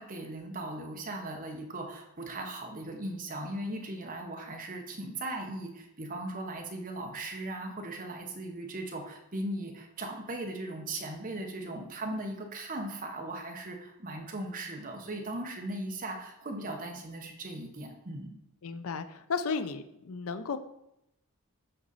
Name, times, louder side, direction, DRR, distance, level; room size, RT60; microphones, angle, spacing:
voice 1, 0.0-18.4, right 1 dB, 40° right, 2 dB, 1.0 m, -38 dB
voice 2, 18.6-20.6, left 5 dB, 65° left, 11 dB, 0.5 m, -34 dB
7.8 x 4.0 x 4.1 m, 0.83 s
head